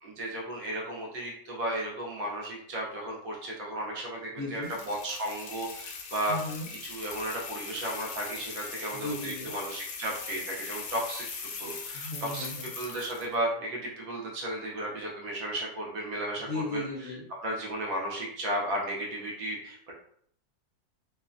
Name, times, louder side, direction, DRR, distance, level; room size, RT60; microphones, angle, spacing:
voice 1, 0.0-6.4 6.7-11.2 11.6-12.5 12.7-16.8 17.4-19.9, right 1 dB, 65° right, -3 dB, 1.0 m, -34 dB
voice 2, 4.4-4.7 6.3-6.7 8.9-9.5 11.9-12.7 16.5-17.2, left 2 dB, 60° left, -6 dB, 0.7 m, -36 dB
sound 1, 4.6-13.3, left 5 dB, 85° left, 1.2 m, -41 dB
3.1 x 2.1 x 2.4 m, 0.65 s
omnidirectional pair, 1.8 m